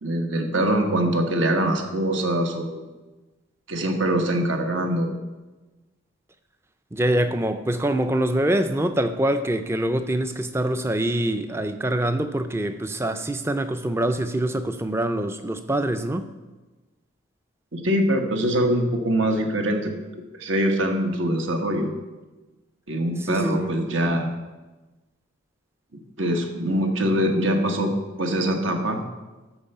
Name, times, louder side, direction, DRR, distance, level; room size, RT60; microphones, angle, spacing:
voice 1, 0.0-2.9 3.7-5.1 17.7-19.9 20.4-21.9 22.9-24.3 26.2-29.0, right 1 dB, 70° right, 3 dB, 1.3 m, -23 dB
voice 2, 6.9-16.3 23.2-23.7, right 1 dB, 10° right, 9 dB, 0.5 m, -24 dB
12.5 x 4.5 x 6.6 m, 1.2 s
head